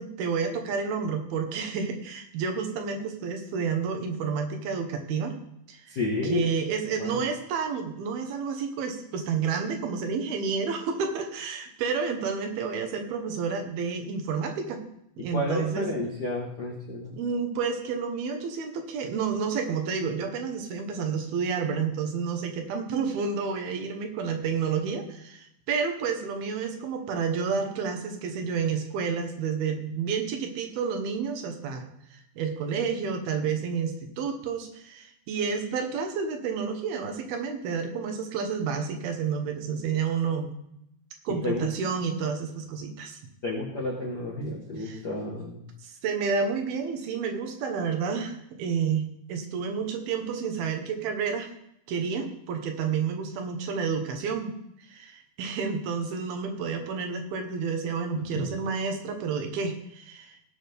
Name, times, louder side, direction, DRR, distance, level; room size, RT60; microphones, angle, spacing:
voice 1, 0.0-5.3 5.7-5.9 6.2-14.8 15.2-15.9 17.1-40.5 41.2-43.2 44.8-45.0 45.8-51.5 51.9-54.5 54.9-60.4, right 6 dB, 80° right, 5 dB, 3.0 m, -30 dB
voice 2, 5.9-6.5 7.0-7.3 15.3-17.1 41.4-41.7 43.4-45.6 58.3-58.5, left 2 dB, 70° left, -3 dB, 0.9 m, -31 dB
17.0 x 6.2 x 3.5 m, 0.76 s
omnidirectional pair, 4.4 m